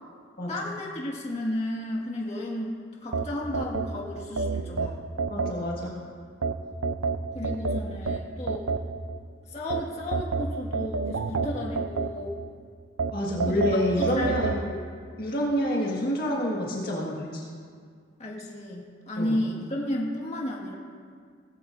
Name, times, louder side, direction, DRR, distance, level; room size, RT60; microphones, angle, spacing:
voice 1, 0.5-5.1 7.3-8.7 9.5-12.4 13.5-14.8 18.2-20.8, left 1 dB, 35° left, -3 dB, 1.9 m, -33 dB
sound 1, 3.1-5.9 6.4-9.2 9.7-12.5 13.0-14.6, right 4 dB, 85° right, 0.6 m, -29 dB
voice 2, 5.3-5.9 13.1-14.6 15.2-17.4 19.2-19.4, left 1 dB, 50° left, -3 dB, 1.8 m, -27 dB
18.5 x 15.0 x 2.7 m, 2.1 s
head